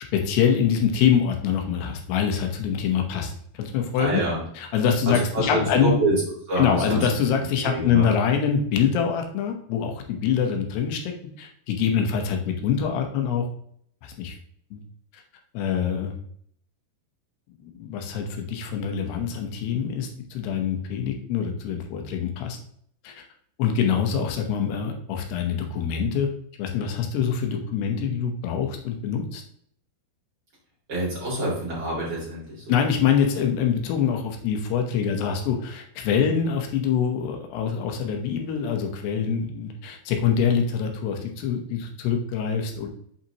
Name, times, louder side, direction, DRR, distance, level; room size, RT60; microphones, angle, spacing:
voice 1, 0.1-4.2 4.6-5.9 6.6-13.5 14.0-14.4 14.7-14.8 15.1-15.2 15.5-16.1 17.6-22.6 23.0-23.2 23.6-26.3 26.6-29.4 32.7-42.9, left 7 dB, 85° left, 3 dB, 3.1 m, -25 dB
voice 2, 4.0-4.4 5.0-7.2 7.6-8.1 30.9-32.8, right 1 dB, 30° right, -6 dB, 3.4 m, -26 dB
7.4 x 5.7 x 2.9 m, 0.65 s
omnidirectional pair, 4.7 m